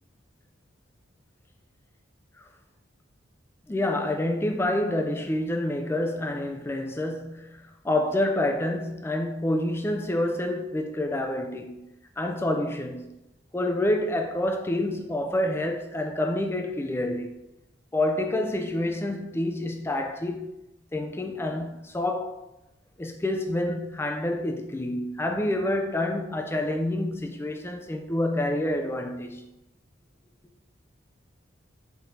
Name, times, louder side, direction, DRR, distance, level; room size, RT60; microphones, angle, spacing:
voice 1, 3.7-11.9 12.2-13.1 13.5-17.3 17.9-20.5 20.9-22.4 23.0-29.5, left 1 dB, 10° left, 0.3 m, -28 dB
4.7 x 2.6 x 3.3 m
head